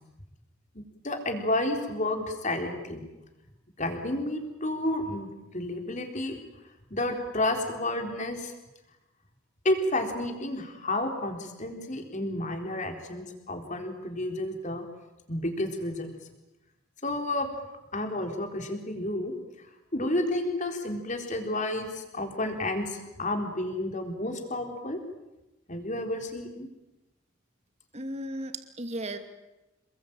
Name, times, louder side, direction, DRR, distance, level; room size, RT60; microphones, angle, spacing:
voice 1, 0.7-3.0 3.8-5.3 5.5-6.4 6.9-8.5 9.6-14.8 15.3-16.1 17.0-17.5 17.9-19.3 19.9-25.0 25.7-26.7, left 1 dB, 35° left, 4 dB, 4.2 m, -31 dB
voice 2, 27.9-29.2, right 1 dB, 30° right, 7 dB, 2.6 m, -35 dB
28.0 x 21.5 x 9.0 m, 1.0 s
head